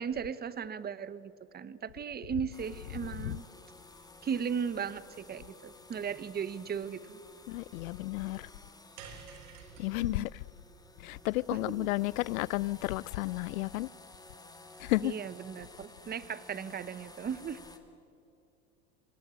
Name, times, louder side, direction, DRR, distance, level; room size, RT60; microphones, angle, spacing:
voice 1, 0.0-3.4 4.2-7.2 10.0-10.3 11.5-11.9 15.0-17.6, right 7 dB, 25° right, 1.1 m, -37 dB
sound 1, 2.5-17.8, left 2 dB, 10° left, 2.4 m, -54 dB
voice 2, 7.5-8.5 9.8-10.4 11.0-13.9 14.8-15.1, left 19 dB, 85° left, 0.6 m, -32 dB
sound 2, 9.0-13.4, right 6 dB, 70° right, 4.2 m, -54 dB
26.5 x 19.0 x 8.9 m
supercardioid pair, 100°, 41 cm